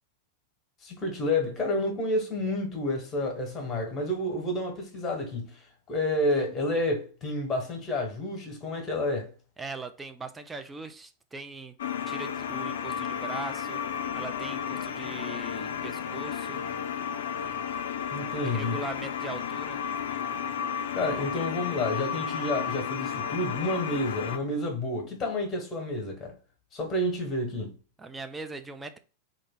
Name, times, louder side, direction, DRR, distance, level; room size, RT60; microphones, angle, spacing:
voice 1, 0.8-9.3 18.1-18.8 20.9-26.3 26.7-27.7, left 1 dB, 20° left, 1.2 m, -30 dB
voice 2, 9.6-11.8 12.1-13.8 14.2-16.6 18.4-19.8 28.0-29.0, right 3 dB, 10° right, 0.4 m, -40 dB
sound 1, 11.8-24.4, left 8 dB, 60° left, 0.3 m, -33 dB
2.4 x 2.4 x 3.6 m
figure-of-eight pair, 90°, 0 cm